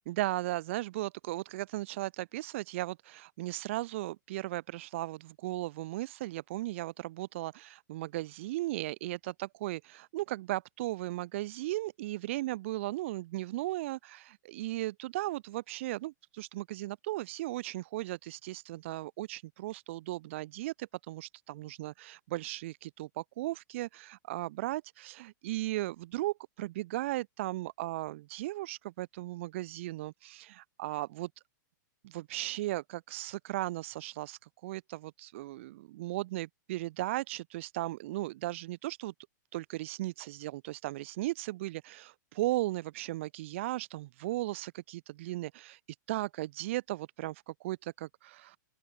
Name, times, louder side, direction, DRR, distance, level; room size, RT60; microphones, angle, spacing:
voice 1, 0.1-31.3 32.0-39.1 39.5-45.8 46.1-48.6, right 17 dB, 40° right, 1.2 m, -36 dB
open air
hypercardioid pair, 170°, 10 cm